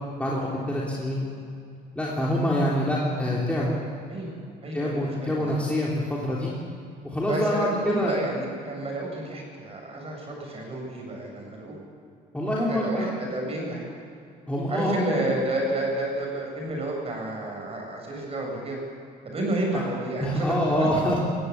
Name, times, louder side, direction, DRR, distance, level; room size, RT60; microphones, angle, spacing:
voice 1, 0.2-1.3 1.9-3.8 4.7-6.5 7.0-8.2 12.3-13.1 14.5-15.0 19.7-19.9 20.2-21.2, equal, 5° left, -5 dB, 3.5 m, -26 dB
voice 2, 4.6-5.6 7.3-11.7 12.4-13.8 14.7-18.8 19.2-20.5, right 1 dB, 35° right, 0 dB, 7.5 m, -30 dB
20.5 x 15.5 x 8.6 m, 2.4 s
cardioid pair, 110°, 17 cm